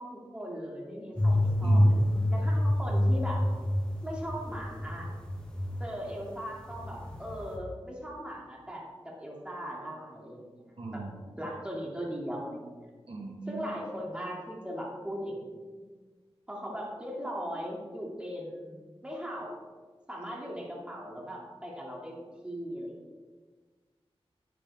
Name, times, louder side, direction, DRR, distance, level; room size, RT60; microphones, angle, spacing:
voice 1, 0.0-2.1 2.3-3.4 4.0-5.1 5.8-10.6 10.9-11.0 11.4-12.7 13.5-15.5 16.5-18.8 19.0-19.5 20.1-22.1 22.4-23.0, equal, 10° right, -3 dB, 2.9 m, -38 dB
sound 1, 1.2-6.2 6.4-7.6, left 1 dB, 10° left, 2.2 m, -27 dB
voice 2, 1.6-2.0 10.8-11.1 13.1-13.6, right 3 dB, 65° right, 0 dB, 1.5 m, -38 dB
10.0 x 10.0 x 3.7 m, 1.4 s
wide cardioid pair, 65°, 10 cm